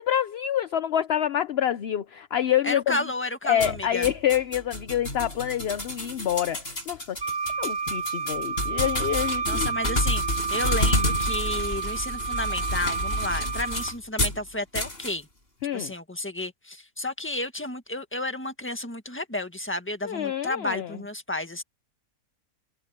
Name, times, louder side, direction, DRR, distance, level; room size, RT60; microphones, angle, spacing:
voice 1, 0.0-3.0 3.5-7.2 7.6-9.7 15.6-15.9 20.0-21.0, left 10 dB, 55° left, 0.7 m, -27 dB
voice 2, 2.6-4.1 9.4-15.3 15.7-21.6, left 1 dB, 10° left, 1.6 m, -32 dB
sound 1, 3.6-14.4 14.7-15.1, left 1 dB, 40° left, 5.9 m, -30 dB
Wind instrument woodwind instrument, 7.2-14.0, right 5 dB, 25° right, 2.1 m, -30 dB
omnidirectional pair, 1.6 m